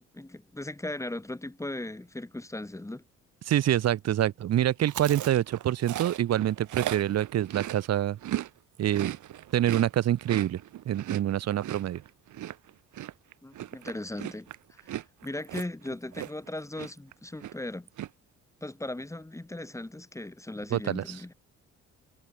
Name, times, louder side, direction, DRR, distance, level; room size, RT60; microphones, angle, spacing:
voice 1, 0.0-3.0 13.4-14.9 15.2-17.9 18.6-21.3, left 1 dB, 10° left, 2.4 m, -38 dB
voice 2, 3.5-8.2 8.8-9.2 9.5-10.6 10.9-12.0 20.7-21.0, right 12 dB, 60° right, 0.9 m, -26 dB
Chewing mastication, 4.8-8.5 8.8-16.5 16.8-17.1 17.4-18.1, right 13 dB, 75° right, 3.9 m, -37 dB
cardioid pair, 90°, 30 cm